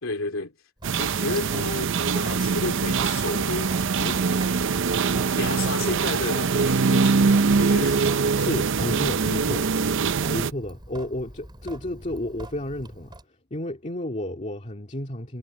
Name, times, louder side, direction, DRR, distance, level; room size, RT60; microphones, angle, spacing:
voice 1, 0.0-0.5 1.0-4.5 5.3-8.0, left 3 dB, 80° left, 2.7 m, -32 dB
Sink (filling or washing) / Drip, 0.8-13.2, right 1 dB, 20° right, 3.7 m, -44 dB
sound 1, 0.8-10.5, right 5 dB, 65° right, 0.6 m, -23 dB
voice 2, 8.4-9.7 10.3-13.1 13.5-15.4, left 1 dB, 35° left, 2.2 m, -31 dB
head